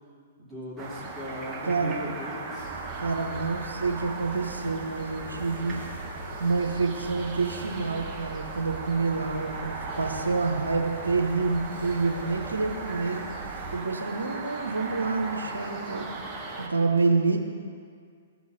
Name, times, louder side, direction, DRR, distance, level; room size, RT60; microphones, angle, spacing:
voice 1, 0.4-2.7, left 1 dB, ahead, -9 dB, 2.5 m, -38 dB
sound 1, 0.8-16.7, right 3 dB, 20° right, 1.2 m, -38 dB
voice 2, 1.6-2.0 3.0-5.8 6.4-13.2 13.7-16.1 16.6-17.4, right 4 dB, 90° right, 3 dB, 0.8 m, -27 dB
sound 2, 2.5-13.8, right 3 dB, 85° left, 2.5 m, -43 dB
14.0 x 4.8 x 4.0 m, 2.1 s
hypercardioid pair, 120°, 0 cm